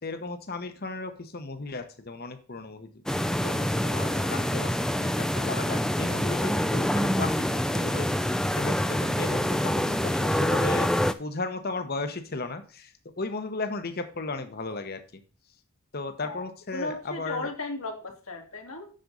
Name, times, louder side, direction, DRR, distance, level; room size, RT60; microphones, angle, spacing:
voice 1, 0.0-2.9 3.4-10.9 11.2-15.2 15.9-17.5, left 3 dB, 45° left, 8 dB, 0.9 m, -35 dB
sound 1, 3.1-11.1, equal, 5° left, 0.3 m, -26 dB
voice 2, 16.7-18.9, left 2 dB, 70° left, 3 dB, 2.0 m, -35 dB
7.7 x 6.8 x 3.9 m, 0.38 s
head